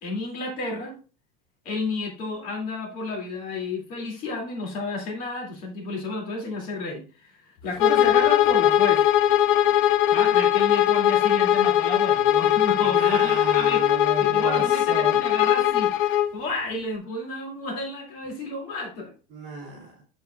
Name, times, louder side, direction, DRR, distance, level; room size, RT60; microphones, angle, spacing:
voice 1, 0.0-0.9 1.6-9.1 10.1-13.8 14.2-15.9 16.3-19.1, left 2 dB, 45° left, 0 dB, 2.5 m, -31 dB
Bowed string instrument, 7.8-16.3, left 11 dB, 60° left, 0.7 m, -20 dB
voice 2, 12.8-15.2 19.3-20.0, right 3 dB, 40° right, -4 dB, 2.9 m, -34 dB
7.8 x 7.6 x 2.3 m, 0.36 s
cardioid pair, 165°, 20 cm